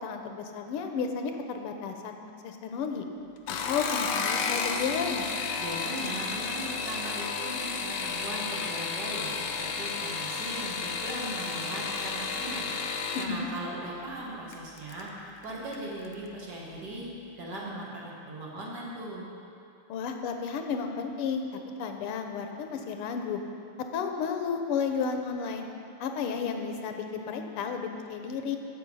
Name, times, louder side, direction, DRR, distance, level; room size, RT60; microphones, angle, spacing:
voice 1, 0.0-2.2 2.4-3.0 3.7-5.3 13.2-13.5 19.9-21.5 21.8-23.4 23.9-25.7 26.0-28.6, left 6 dB, 90° left, 5 dB, 1.7 m, -32 dB
sound 1, 3.4-13.3 14.5-15.0 15.4-15.9 16.1-16.2, left 5 dB, 70° left, 1.1 m, -32 dB
voice 2, 5.6-17.1 17.4-19.3, right 1 dB, 50° right, -4 dB, 1.9 m, -39 dB
9.6 x 6.9 x 5.4 m, 2.6 s
omnidirectional pair, 2.4 m